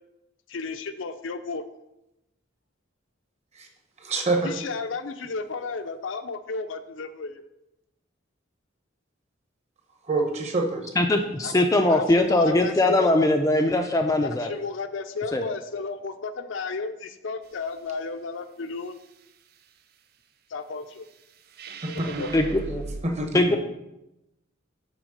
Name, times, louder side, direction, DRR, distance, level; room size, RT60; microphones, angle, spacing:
voice 1, 0.5-1.6 4.4-7.4 11.4-11.5 11.9-13.1 14.2-19.0 20.5-21.1 21.9-22.5, left 4 dB, 70° left, 9 dB, 0.5 m, -33 dB
voice 2, 4.0-4.5 10.1-10.8 21.8-22.2 23.0-23.4, right 2 dB, 35° right, 3 dB, 1.1 m, -26 dB
voice 3, 11.0-14.5 15.3-15.4 22.3-22.8 23.3-23.6, left 2 dB, 15° left, 4 dB, 0.4 m, -21 dB
sound 1, 21.5-23.0, right 3 dB, 55° right, 0.5 m, -37 dB
6.1 x 4.4 x 6.4 m, 0.90 s
head